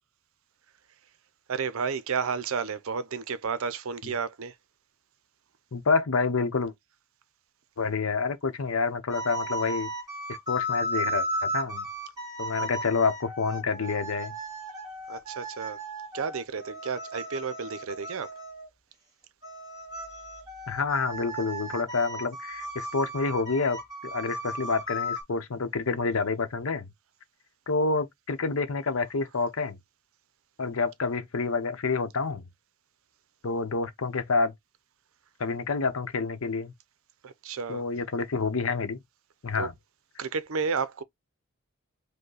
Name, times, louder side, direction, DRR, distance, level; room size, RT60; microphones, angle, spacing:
voice 1, 1.5-4.5 12.6-12.7 15.1-15.8 16.1-18.3 37.2-37.9 39.6-39.7 40.2-41.0, right 5 dB, 65° right, 0.5 m, -32 dB
voice 2, 5.7-6.7 7.8-9.9 10.5-11.8 12.4-14.3 20.7-26.9 27.7-29.8 30.6-32.5 33.4-34.5 35.4-36.7 37.7-39.0 39.4-39.7, left 4 dB, 70° left, 0.8 m, -28 dB
sound 1, 9.1-18.7 19.4-25.2, equal, 15° right, 2.1 m, -35 dB
5.3 x 2.2 x 3.9 m
head